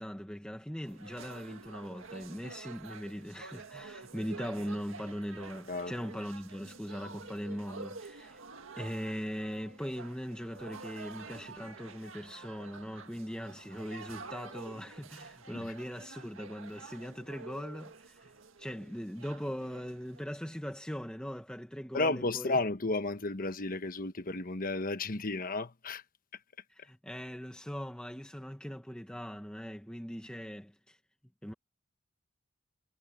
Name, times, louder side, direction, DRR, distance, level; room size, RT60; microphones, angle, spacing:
voice 1, 0.0-8.4 8.8-22.6 26.7-31.0 31.4-31.5, equal, 5° left, 1.2 m, -40 dB
sound 1, 0.8-20.2, right 4 dB, 70° right, 1.9 m, -49 dB
voice 2, 21.9-26.0, left 2 dB, 45° left, 1.3 m, -33 dB
head